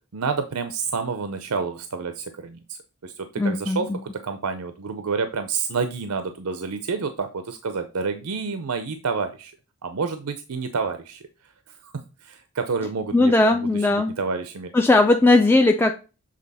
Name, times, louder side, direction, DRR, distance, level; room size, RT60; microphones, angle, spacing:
voice 1, 0.1-9.5 9.8-11.2 11.8-11.9 12.2-14.7, right 5 dB, 80° right, 9 dB, 0.6 m, -29 dB
voice 2, 3.4-4.0 13.1-14.2 14.7-15.9, left 2 dB, 10° left, 4 dB, 0.3 m, -18 dB
7.5 x 3.8 x 4.1 m, 0.32 s
head